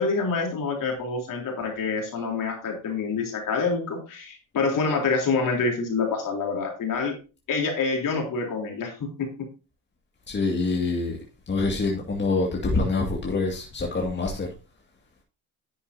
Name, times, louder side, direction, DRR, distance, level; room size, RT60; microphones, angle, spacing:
voice 1, 0.0-7.2 7.5-9.3, left 4 dB, 55° left, 3.6 m, -27 dB
voice 2, 10.3-11.2 11.5-14.5, left 3 dB, 25° left, 2.2 m, -25 dB
10.5 x 7.2 x 2.7 m
supercardioid pair, 90°, 40 cm